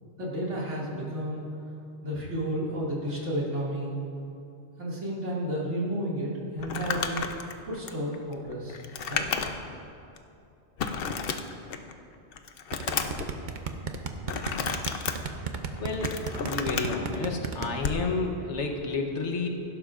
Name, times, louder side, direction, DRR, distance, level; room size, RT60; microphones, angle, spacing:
voice 1, 0.2-1.4 2.0-3.9 4.8-7.3 7.7-8.8 9.1-9.3, equal, 80° right, -6 dB, 2.7 m, -32 dB
Crumpling crinkling, 6.6-9.8 10.2-10.3 10.8-11.9 12.3-13.3 14.3-15.1 15.8-17.0 17.8-18.0, left 6 dB, 60° left, 0.8 m, -32 dB
sound 1, 12.7-17.7, right 5 dB, 50° right, 0.7 m, -33 dB
voice 2, 15.8-19.5, left 3 dB, 80° left, 3 dB, 1.3 m, -31 dB
16.5 x 11.5 x 2.5 m, 2.6 s
omnidirectional pair, 1.2 m